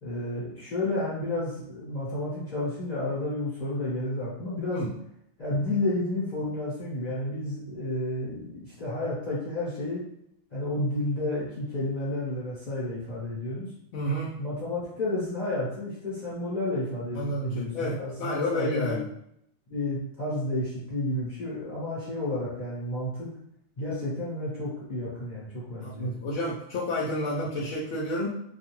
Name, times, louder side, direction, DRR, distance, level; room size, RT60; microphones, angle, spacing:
voice 1, 0.0-4.8 5.4-10.0 10.5-13.7 14.4-19.0 19.7-23.3 23.8-26.1, left 1 dB, 40° left, -9 dB, 0.8 m, -31 dB
voice 2, 13.9-14.4 17.1-19.1 25.8-28.3, left 1 dB, 75° left, -5 dB, 0.9 m, -30 dB
2.4 x 2.3 x 2.9 m, 0.73 s
omnidirectional pair, 1.3 m